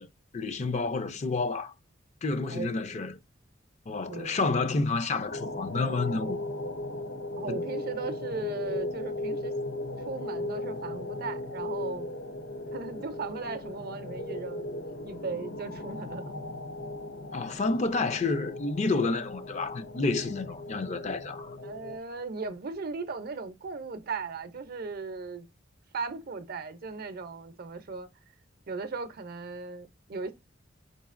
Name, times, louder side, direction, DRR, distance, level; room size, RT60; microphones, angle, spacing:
voice 1, 0.3-1.7 2.2-3.2 3.9-6.4 7.5-7.6 17.3-21.6, left 3 dB, 40° left, 0.5 m, -29 dB
voice 2, 4.1-4.4 7.4-9.5 10.1-12.1 12.7-14.7 15.0-16.3 17.4-17.6 21.6-25.5 25.9-28.1 28.7-30.3, right 4 dB, 55° right, 0.6 m, -37 dB
sound 1, 5.3-22.0, left 1 dB, 80° left, 0.7 m, -37 dB
4.8 x 3.9 x 2.5 m
head